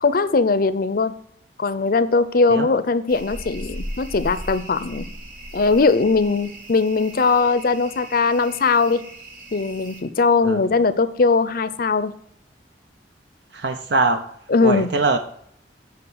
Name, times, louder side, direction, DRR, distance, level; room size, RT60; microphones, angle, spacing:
voice 1, 0.0-1.1 1.6-5.1 5.5-9.0 9.5-12.1 14.5-14.9, left 4 dB, 55° left, 14 dB, 0.6 m, -20 dB
sound 1, 3.1-10.0, equal, 50° right, 2.8 m, -37 dB
voice 2, 13.5-14.2 14.6-15.2, right 3 dB, 65° right, 7 dB, 0.7 m, -22 dB
8.7 x 5.7 x 6.3 m, 0.68 s
head